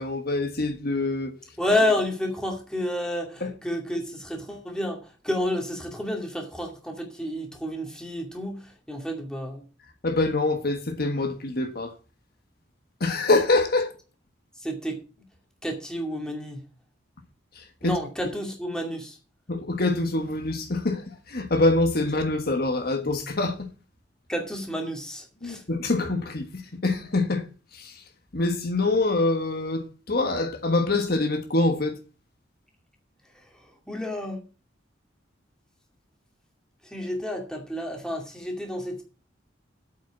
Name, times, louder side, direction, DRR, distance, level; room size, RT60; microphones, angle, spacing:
voice 1, 0.0-1.3 3.4-3.5 10.0-11.9 13.0-13.9 17.5-18.0 19.5-23.6 25.4-27.4 27.7-28.0 28.3-32.0, left 2 dB, 55° left, 1.5 m, -25 dB
voice 2, 1.6-9.6 14.6-15.0 15.6-16.6 17.8-19.2 24.3-25.6 33.9-34.4 36.8-39.0, left 1 dB, 5° left, 2.4 m, -30 dB
8.3 x 6.2 x 8.2 m
head